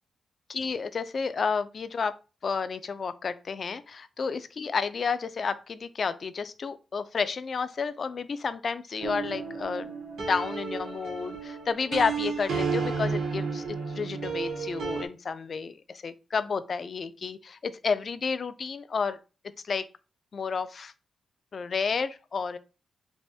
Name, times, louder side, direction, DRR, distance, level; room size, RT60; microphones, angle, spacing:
voice 1, 0.5-2.1 2.4-9.9 10.2-15.7 16.0-19.2 19.7-19.8 20.3-20.9 21.5-22.6, left 5 dB, 40° left, 0.3 m, -31 dB
sound 1, 9.0-15.1, right 5 dB, 75° right, 1.1 m, -32 dB
3.4 x 2.5 x 4.1 m
wide cardioid pair, 160°, 0 cm